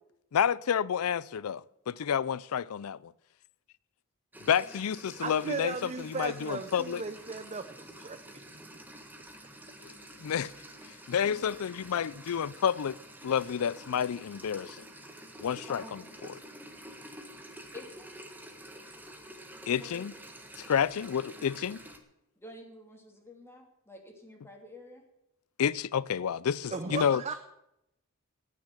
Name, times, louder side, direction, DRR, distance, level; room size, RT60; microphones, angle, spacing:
voice 1, 0.3-3.1 4.5-7.0 9.8-9.9 10.2-10.5 11.1-13.0 13.2-14.8 15.4-16.0 19.7-20.1 20.7-21.8 25.6-27.2, left 8 dB, 90° left, 0.4 m, -29 dB
sound 1, 4.3-22.0, right 1 dB, 10° right, 1.5 m, -49 dB
voice 2, 5.2-8.2 26.7-27.4, right 4 dB, 30° right, 0.7 m, -36 dB
voice 3, 15.7-16.2 17.7-18.1 19.8-20.0 21.3-21.5 22.4-25.0 26.7-27.0, left 2 dB, 10° left, 2.8 m, -49 dB
18.0 x 6.7 x 8.2 m
head